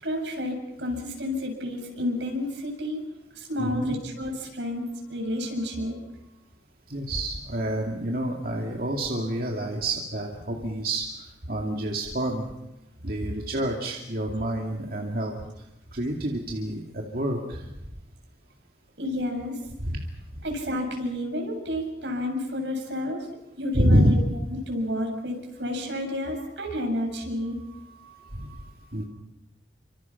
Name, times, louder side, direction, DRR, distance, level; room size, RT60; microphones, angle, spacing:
voice 1, 0.0-3.0 3.3-6.0 19.0-19.6 20.4-23.3 23.6-24.2 24.7-29.1, left 1 dB, 80° right, 2 dB, 7.3 m, -31 dB
voice 2, 3.6-3.9 6.9-12.4 13.0-15.3 15.9-17.7 19.8-20.0 23.7-24.1 28.3-28.5 28.9-29.0, right 1 dB, 55° right, 0 dB, 2.6 m, -27 dB
30.0 x 25.5 x 5.9 m, 0.94 s
head